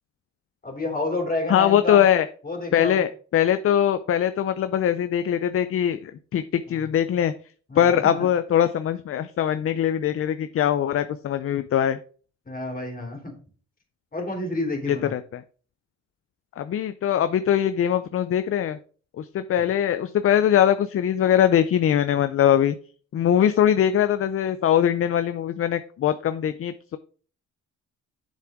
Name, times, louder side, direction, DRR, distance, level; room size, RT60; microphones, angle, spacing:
voice 1, 0.6-2.0 2.4-3.0 6.7-6.8 7.7-8.3 12.4-13.3 14.1-15.1 19.6-19.7, left 2 dB, 30° left, 1 dB, 3.1 m, -30 dB
voice 2, 1.5-2.3 2.7-7.3 7.8-12.0 14.9-15.4 16.6-18.8 19.2-22.7 23.1-27.0, left 10 dB, 50° left, 11 dB, 0.5 m, -22 dB
7.4 x 7.1 x 3.6 m, 0.42 s
cardioid pair, 90°, 30 cm